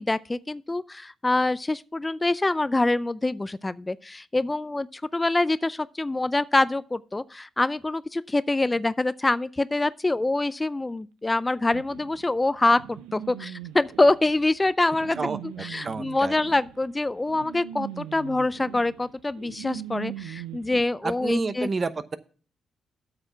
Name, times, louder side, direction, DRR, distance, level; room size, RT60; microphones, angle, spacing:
voice 1, 0.0-15.2 15.4-21.7, left 2 dB, 20° left, 0.4 m, -25 dB
sound 1, 11.7-20.8, right 11 dB, 90° right, 0.6 m, -40 dB
voice 2, 15.2-16.3 21.0-22.2, right 4 dB, 40° right, 0.9 m, -30 dB
8.5 x 6.9 x 5.7 m
supercardioid pair, 50°, 0 cm